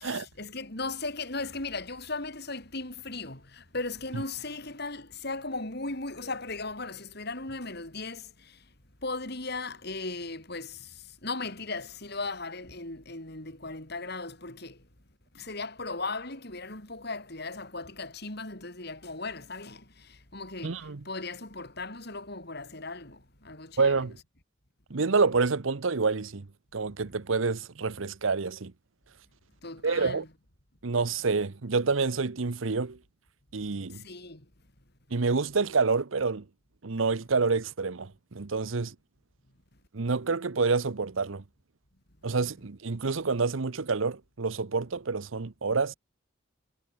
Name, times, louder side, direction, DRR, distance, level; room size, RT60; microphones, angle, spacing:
voice 1, 0.0-8.6 9.0-14.8 15.3-24.1 29.6-30.3 33.9-34.4, left 3 dB, 55° left, 6.0 m, -37 dB
voice 2, 20.6-21.0 23.8-24.2 24.9-26.5 26.7-28.7 29.8-30.2 30.8-33.0 33.5-34.0 35.1-36.4 36.8-38.9 39.9-41.4 42.2-45.9, right 4 dB, 85° right, 0.9 m, -28 dB
head